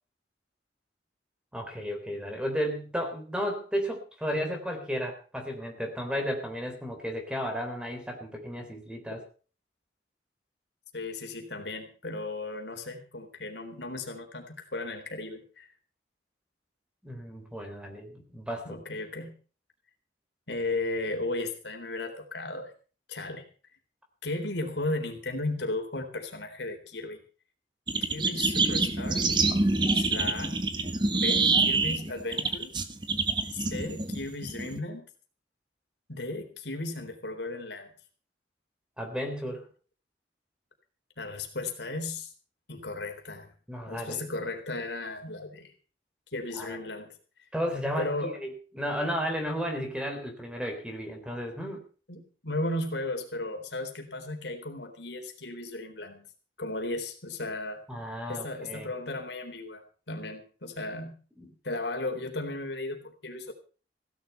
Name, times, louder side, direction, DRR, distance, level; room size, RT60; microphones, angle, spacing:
voice 1, 1.5-9.2 17.0-18.8 39.0-39.6 43.7-44.2 46.5-46.8 47.5-51.8 57.9-58.9 61.4-61.5, equal, 5° right, 3 dB, 3.7 m, -33 dB
voice 2, 10.9-15.7 18.6-19.3 20.5-22.7 23.1-23.5 24.2-27.2 28.1-29.3 29.9-30.6 31.1-32.7 33.5-35.1 36.1-37.9 41.2-42.3 42.7-43.5 43.9-45.7 46.3-47.5 48.0-48.4 52.1-56.3 56.6-57.8 58.3-61.2 61.6-63.5, left 2 dB, 75° left, 4 dB, 3.8 m, -35 dB
sound 1, 27.9-34.8, right 3 dB, 25° right, 1.4 m, -26 dB
16.5 x 12.0 x 5.7 m, 0.38 s
head